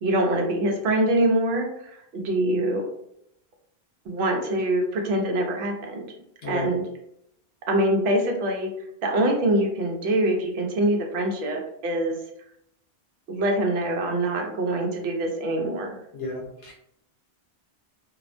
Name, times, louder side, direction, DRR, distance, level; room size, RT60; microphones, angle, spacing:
voice 1, 0.0-2.9 4.1-6.1 6.5-6.8 7.7-8.7 9.0-12.2 13.3-16.0, right 1 dB, 80° right, 2 dB, 0.8 m, -24 dB
voice 2, 16.1-16.7, left 2 dB, 70° left, -2 dB, 0.8 m, -33 dB
2.4 x 2.1 x 2.4 m, 0.76 s
omnidirectional pair, 1.1 m